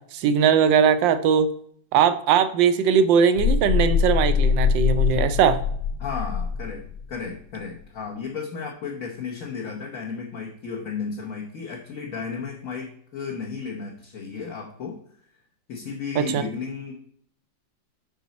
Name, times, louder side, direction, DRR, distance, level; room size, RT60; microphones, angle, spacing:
voice 1, 0.1-1.5 1.9-5.6 16.2-16.4, right 7 dB, 80° right, 11 dB, 1.4 m, -20 dB
sound 1, 3.4-7.1, left 6 dB, 75° left, 1.1 m, -23 dB
voice 2, 6.0-15.0 15.7-16.9, left 5 dB, 50° left, -1 dB, 1.3 m, -34 dB
8.1 x 5.4 x 4.1 m, 0.64 s
omnidirectional pair, 2.0 m